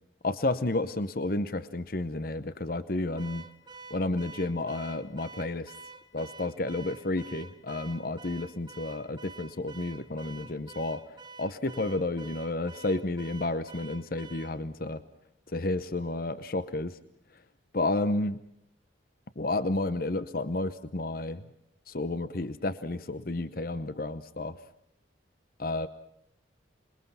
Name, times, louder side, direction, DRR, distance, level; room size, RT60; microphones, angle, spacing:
voice 1, 0.2-3.5 3.9-5.7 6.1-11.0 11.4-15.0 15.5-17.0 17.7-18.4 19.4-21.4 21.9-24.6 25.6-25.9, left 2 dB, 50° left, 14 dB, 0.8 m, -31 dB
Car / Alarm, 3.2-14.6, right 4 dB, 25° right, 1.2 m, -48 dB
27.5 x 21.5 x 5.6 m, 0.76 s
head